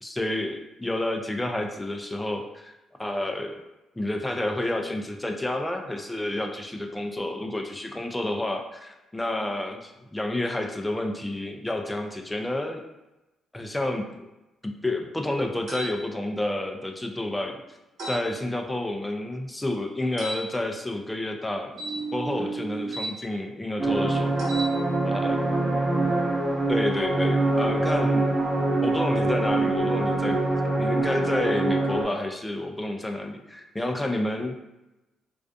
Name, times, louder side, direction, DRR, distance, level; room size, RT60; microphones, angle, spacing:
voice 1, 0.0-2.7 3.0-3.6 4.0-12.8 13.5-14.3 14.6-17.6 18.1-21.7 22.1-24.3 25.1-25.5 26.7-28.3 28.8-34.6, left 1 dB, 10° left, 4 dB, 0.3 m, -30 dB
sound 1, 15.7-15.9 18.0-18.2 20.2-20.4 21.7-23.1 24.3-24.7, right 3 dB, 65° right, 0.8 m, -33 dB
sound 2, 23.8-32.0, right 2 dB, 5° right, 0.8 m, -24 dB
2.4 x 2.2 x 2.5 m, 0.98 s
cardioid pair, 90°, 0 cm